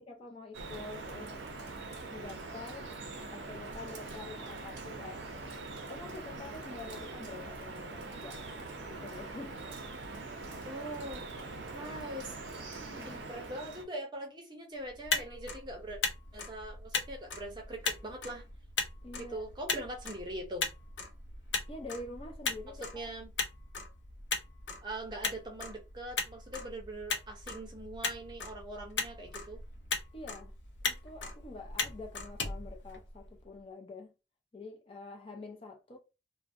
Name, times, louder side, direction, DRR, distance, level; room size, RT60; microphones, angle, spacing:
voice 1, 0.0-1.3 2.0-5.2 5.9-8.5 8.8-9.6 12.8-13.2 19.0-19.4 21.7-23.1 30.1-30.5 30.8-34.1 34.5-36.0, left 3 dB, 30° left, 0.5 m, -46 dB
Drip, 0.5-13.9, right 3 dB, 85° right, 0.5 m, -43 dB
voice 2, 10.7-11.2 11.7-12.4 13.0-16.0 16.3-18.4 19.2-20.7 22.8-23.3 24.8-29.6, right 1 dB, 25° right, 0.6 m, -42 dB
Motor vehicle (road), 14.9-33.4, left 4 dB, 85° left, 0.5 m, -38 dB
2.4 x 2.0 x 2.5 m
head